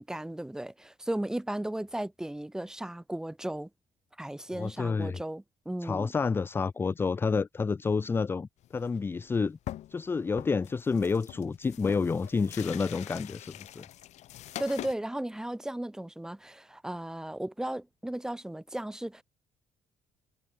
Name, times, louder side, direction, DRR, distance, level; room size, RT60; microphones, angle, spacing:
voice 1, 0.0-3.7 4.2-6.1 14.6-19.2, right 1 dB, 5° right, 2.8 m, -35 dB
voice 2, 4.5-5.2 5.8-9.6 9.9-13.8, left 4 dB, 20° left, 0.5 m, -29 dB
sound 1, 8.6-9.0 9.3-9.4 9.7-10.1 10.4-14.9, left 13 dB, 65° left, 6.3 m, -44 dB
cardioid pair, 155°, 13 cm